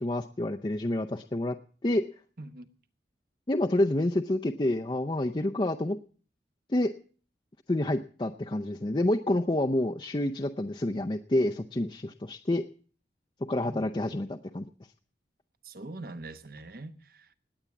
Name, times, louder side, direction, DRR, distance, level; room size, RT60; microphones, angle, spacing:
voice 1, 0.0-1.6 1.8-2.1 3.5-6.0 6.7-6.9 7.7-12.7 13.5-14.6, left 1 dB, 25° left, 3 dB, 0.6 m, -28 dB
voice 2, 2.4-2.7 13.6-13.8 15.6-17.3, right 2 dB, 55° right, 10 dB, 1.2 m, -43 dB
19.0 x 8.9 x 7.1 m, 0.42 s
head